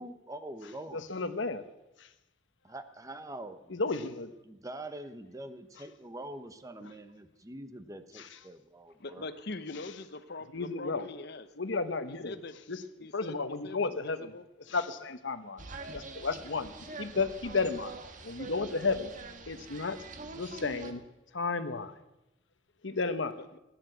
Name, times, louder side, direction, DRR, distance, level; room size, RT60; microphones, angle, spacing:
voice 1, 0.0-1.1 2.6-3.8 4.4-9.2, right 1 dB, 20° right, 9 dB, 1.0 m, -44 dB
voice 2, 0.9-1.6 3.7-4.3 8.2-8.3 10.5-11.1 11.6-12.3 12.7-12.8 13.1-14.3 14.7-15.6 15.9-17.9 18.2-19.1 19.5-20.0 20.3-21.0 21.3-21.9 22.8-23.4, left 4 dB, 85° left, 11 dB, 1.1 m, -33 dB
voice 3, 9.0-11.5 12.1-12.5 13.0-14.5 23.4-23.6, left 3 dB, 60° left, 12 dB, 0.9 m, -43 dB
sound 1, 15.6-20.9, right 3 dB, 45° right, 1.5 m, -45 dB
16.5 x 10.5 x 7.9 m, 0.95 s
head